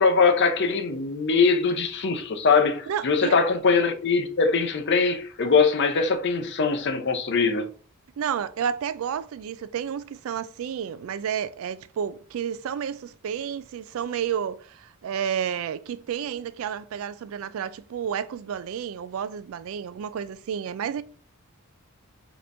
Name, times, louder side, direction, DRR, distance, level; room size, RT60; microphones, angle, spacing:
voice 1, 0.0-7.7, left 4 dB, 55° left, 0.6 m, -22 dB
voice 2, 2.9-3.4 8.2-21.0, right 8 dB, 65° right, 0.3 m, -31 dB
5.1 x 3.0 x 2.6 m
head